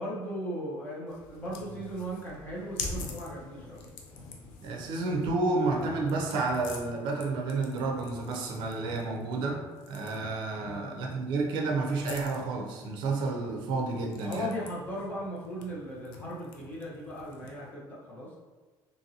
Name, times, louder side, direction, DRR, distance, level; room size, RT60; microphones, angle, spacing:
voice 1, 0.0-3.8 10.6-11.0 14.1-18.3, equal, 20° left, -6 dB, 0.7 m, -37 dB
sound 1, 1.1-17.7, left 3 dB, 80° left, 0.5 m, -45 dB
voice 2, 4.6-14.5, right 3 dB, 65° right, 1 dB, 0.5 m, -30 dB
2.9 x 2.6 x 2.7 m, 1.3 s
cardioid pair, 160°, 9 cm